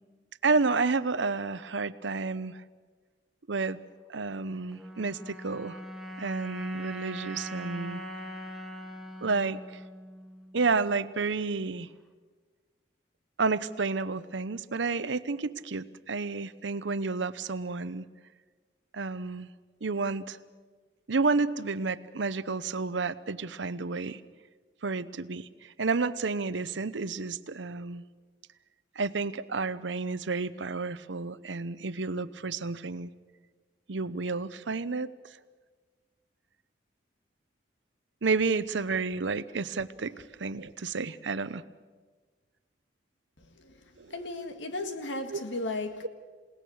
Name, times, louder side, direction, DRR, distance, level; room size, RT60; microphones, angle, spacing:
voice 1, 0.4-2.6 3.5-3.8 4.1-5.8 6.2-8.0 9.2-9.6 10.5-11.9 13.4-18.0 18.9-19.5 19.8-20.4 21.1-24.2 24.8-28.0 29.0-33.1 33.9-35.1 38.2-41.6 44.0-44.1 45.3-45.4, right 4 dB, 80° right, 0.8 m, -30 dB
sound 1, 4.7-11.1, right 1 dB, ahead, 1.3 m, -42 dB
voice 2, 43.4-46.1, left 2 dB, 85° left, 1.9 m, -36 dB
28.0 x 18.5 x 6.4 m
head